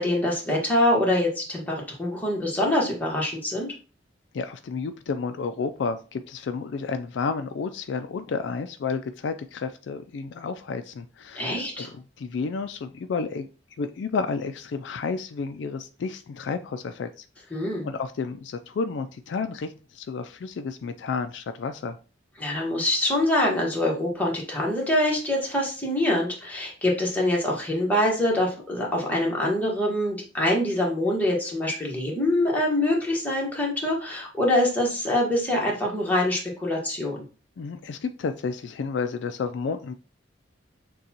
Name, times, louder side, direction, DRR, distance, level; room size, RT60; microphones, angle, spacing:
voice 1, 0.0-3.7 11.3-11.9 17.5-17.9 22.4-37.2, left 1 dB, 10° left, -3 dB, 1.3 m, -24 dB
voice 2, 4.3-11.9 12.2-13.5 13.8-17.2 17.5-22.0 37.6-39.9, left 4 dB, 70° left, 9 dB, 0.4 m, -31 dB
6.4 x 2.3 x 2.9 m, 0.35 s
head